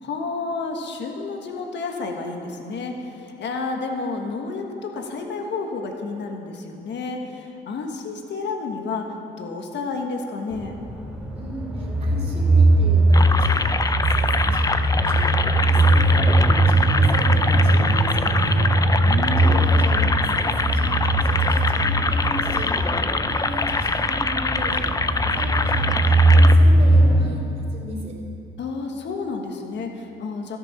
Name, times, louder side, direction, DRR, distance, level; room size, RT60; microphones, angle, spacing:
voice 1, 0.0-9.1 9.4-10.8 19.1-19.7 28.6-30.6, left 4 dB, 65° left, 3 dB, 1.5 m, -30 dB
sound 1, 10.5-27.2, right 1 dB, 5° right, 2.9 m, -19 dB
voice 2, 11.3-18.6 19.4-27.4 27.7-28.2, equal, 35° right, -4 dB, 3.5 m, -36 dB
sound 2, 13.1-26.5, left 3 dB, 20° left, 0.5 m, -24 dB
13.0 x 9.8 x 5.7 m, 2.6 s
cardioid pair, 90°, 20 cm